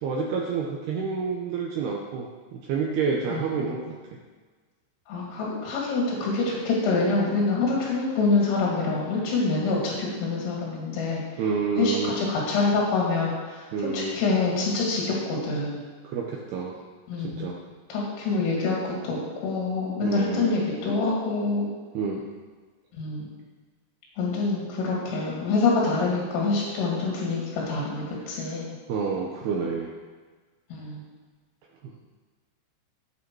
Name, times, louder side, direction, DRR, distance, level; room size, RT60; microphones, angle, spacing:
voice 1, 0.0-3.8 11.4-12.2 13.7-14.2 16.0-16.8 17.2-17.6 20.0-20.5 21.9-22.2 28.3-28.5 28.9-29.9 31.8-31.9, right 5 dB, 80° right, 0 dB, 2.3 m, -29 dB
voice 2, 3.3-3.6 5.1-11.2 11.8-13.6 13.9-15.8 17.1-17.5 17.9-21.7 22.9-23.2 24.2-28.6 30.7-31.0, left 3 dB, 75° left, -3 dB, 4.8 m, -26 dB
15.5 x 9.1 x 4.7 m, 1.4 s
omnidirectional pair, 6.0 m